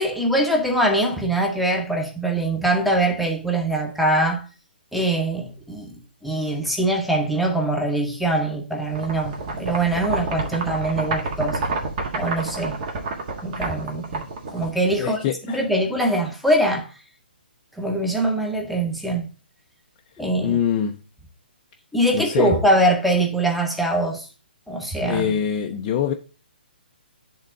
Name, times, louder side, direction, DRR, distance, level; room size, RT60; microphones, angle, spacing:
voice 1, 0.0-4.4 4.9-5.9 6.2-11.6 12.1-12.8 13.4-15.2 15.5-16.9 17.8-19.3 20.2-20.6 21.9-24.3 24.7-25.2, right 1 dB, ahead, 1.0 m, -23 dB
sound 1, 8.9-15.1, right 3 dB, 45° right, 1.6 m, -29 dB
voice 2, 15.0-15.7 20.4-21.0 22.1-22.5 25.0-26.1, left 8 dB, 30° left, 0.5 m, -24 dB
9.8 x 3.7 x 3.8 m
hypercardioid pair, 140°, 6 cm